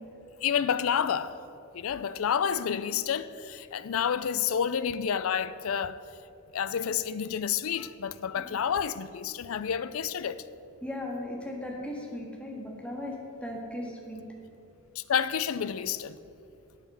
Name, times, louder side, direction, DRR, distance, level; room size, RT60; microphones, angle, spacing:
voice 1, 0.4-1.4 1.7-6.0 6.5-10.4 15.0-16.2, left 8 dB, 65° left, 0.4 m, -29 dB
voice 2, 10.8-14.2, left 1 dB, 5° left, 1.6 m, -37 dB
8.6 x 8.2 x 6.7 m
head